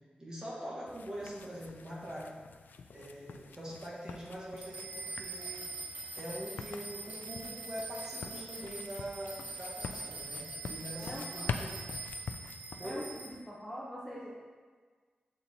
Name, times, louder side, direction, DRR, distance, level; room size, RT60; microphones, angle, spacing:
voice 1, 0.2-2.3 2.9-5.7 6.1-11.8 12.8-13.0, equal, 25° right, -6 dB, 1.6 m, -43 dB
sound 1, 0.9-13.4, left 5 dB, 85° left, 0.3 m, -46 dB
sound 2, 4.6-13.3, right 3 dB, 55° right, 1.1 m, -43 dB
voice 2, 11.0-11.6 12.8-14.3, equal, 10° left, -7 dB, 0.9 m, -44 dB
7.0 x 3.8 x 4.4 m, 1.5 s
wide cardioid pair, 135°, 3 cm